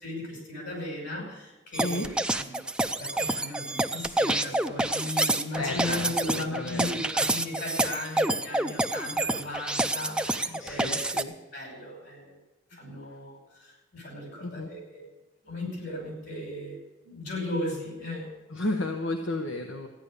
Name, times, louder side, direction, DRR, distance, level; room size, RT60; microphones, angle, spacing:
voice 1, 0.0-2.6 3.0-11.2 11.5-12.4 12.7-15.1 15.4-18.4, left 1 dB, 60° left, 2 dB, 5.5 m, -37 dB
sound 1, 1.7-11.2, right 2 dB, 5° right, 0.5 m, -28 dB
voice 2, 1.8-2.1 5.6-7.2 10.5-11.3 14.4-14.7 18.5-19.9, left 2 dB, 85° left, 3 dB, 1.2 m, -33 dB
14.5 x 10.0 x 6.6 m, 1.1 s
head